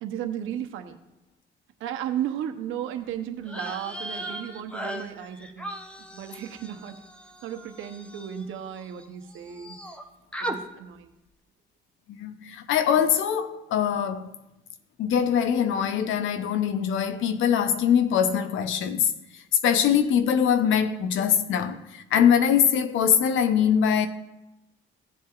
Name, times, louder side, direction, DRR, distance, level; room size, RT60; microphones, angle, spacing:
voice 1, 0.0-1.0 1.8-5.7 6.1-7.0 7.4-9.8 10.4-11.1, right 9 dB, 85° right, 0.9 m, -34 dB
sound 1, 3.4-9.0 9.3-10.0 10.3-10.6, right 1 dB, 5° left, 0.8 m, -38 dB
voice 2, 12.1-14.3 15.0-19.1 19.6-24.1, left 8 dB, 80° left, 0.8 m, -23 dB
16.5 x 7.5 x 2.5 m
cardioid pair, 90°, 20 cm